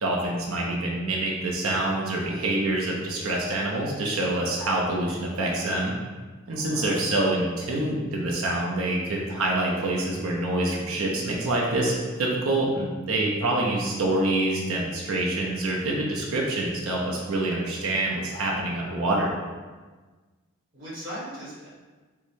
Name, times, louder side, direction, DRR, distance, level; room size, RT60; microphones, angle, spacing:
voice 1, 0.0-5.9 6.5-19.3, right 2 dB, 75° right, -2 dB, 0.6 m, -26 dB
voice 2, 6.5-7.0 20.7-21.7, equal, 55° right, -7 dB, 1.3 m, -38 dB
4.6 x 2.1 x 2.7 m, 1.3 s
head